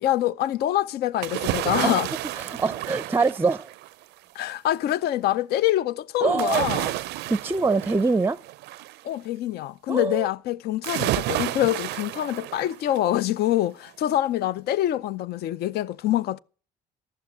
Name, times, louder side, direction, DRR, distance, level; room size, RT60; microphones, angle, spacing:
voice 1, 0.0-2.1 4.3-6.9 9.0-16.4, left 13 dB, 70° left, 0.6 m, -25 dB
sound 1, 1.2-4.0 6.4-9.0 10.8-13.1 13.5-13.6, right 16 dB, 85° right, 0.5 m, -30 dB
voice 2, 2.3-3.7 6.2-6.7 7.3-8.4 9.9-10.3, right 4 dB, 15° right, 0.5 m, -24 dB
14.0 x 6.8 x 8.2 m
cardioid pair, 110°, 17 cm